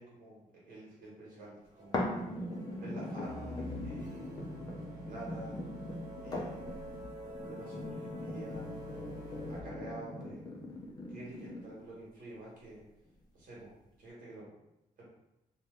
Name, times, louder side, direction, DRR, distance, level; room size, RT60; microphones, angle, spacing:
voice 1, 0.0-2.1 2.7-4.3 4.9-5.6 6.2-6.6 7.4-9.2 9.5-10.4 11.1-12.8 13.3-13.7 14.0-14.5 15.0-15.1, right 1 dB, 75° right, -5 dB, 1.1 m, -48 dB
sound 1, 1.0-1.1 1.4-1.5 1.7-9.6, equal, 25° right, 0.9 m, -47 dB
sound 2, 1.9-11.9 12.5-12.6, left 1 dB, 30° left, 0.5 m, -40 dB
2.9 x 2.2 x 3.3 m, 0.88 s
cardioid pair, 145°, 14 cm